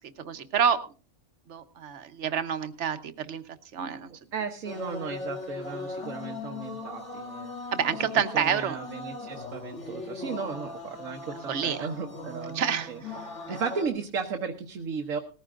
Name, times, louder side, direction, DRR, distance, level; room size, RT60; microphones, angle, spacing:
voice 1, 0.2-0.8 1.5-3.4 3.7-4.1 7.7-8.8 11.5-11.9 12.5-13.2 13.5-13.6, right 7 dB, 65° right, 10 dB, 1.3 m, -28 dB
voice 2, 4.3-7.7 8.3-12.6 12.9-13.0 13.5-15.2, right 5 dB, 85° right, 4 dB, 1.5 m, -35 dB
sound 1, 4.6-13.9, left 2 dB, 65° left, 2.8 m, -39 dB
19.0 x 15.0 x 2.5 m, 0.37 s
omnidirectional pair, 1.3 m